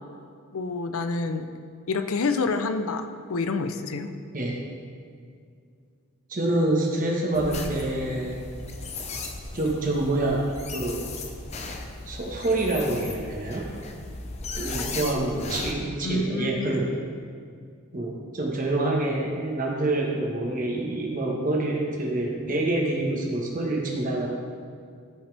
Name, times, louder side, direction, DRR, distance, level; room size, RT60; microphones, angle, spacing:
voice 1, 0.5-1.5 1.9-4.1 14.7-15.0 16.0-16.8, left 3 dB, 75° left, 9 dB, 0.5 m, -28 dB
voice 2, 6.3-8.4 9.5-10.4 10.7-11.0 12.1-13.7 14.6-16.9 17.9-24.3, right 2 dB, 35° right, -1 dB, 1.4 m, -26 dB
sound 1, 7.3-15.7, left 3 dB, 30° left, 0.7 m, -36 dB
14.0 x 5.7 x 3.4 m, 2.2 s
head